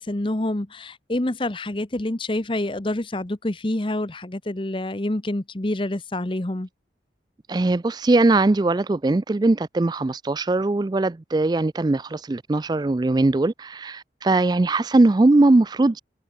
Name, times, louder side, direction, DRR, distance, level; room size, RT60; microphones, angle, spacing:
voice 1, 0.0-6.7, left 1 dB, 30° left, 0.9 m, -27 dB
voice 2, 7.5-16.0, right 2 dB, 20° right, 0.3 m, -20 dB
head